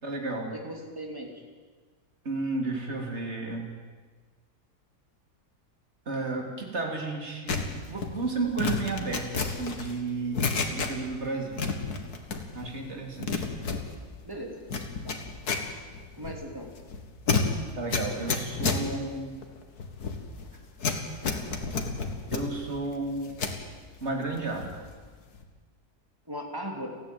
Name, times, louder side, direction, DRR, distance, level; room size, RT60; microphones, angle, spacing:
voice 1, 0.0-0.5 2.3-3.7 6.1-11.6 12.5-13.4 17.8-19.3 21.3-21.5 22.3-23.4 24.0-24.7, right 3 dB, 40° right, 2 dB, 3.5 m, -32 dB
voice 2, 0.6-1.3 14.2-14.6 15.0-15.2 16.1-16.7 26.3-26.9, equal, 15° right, 2 dB, 3.2 m, -37 dB
sound 1, 7.5-11.2 11.5-12.7 13.0-23.6 24.0-24.9 25.1-25.4, left 4 dB, 70° left, 2.3 m, -31 dB
29.5 x 10.0 x 9.4 m, 1.4 s
omnidirectional pair, 1.7 m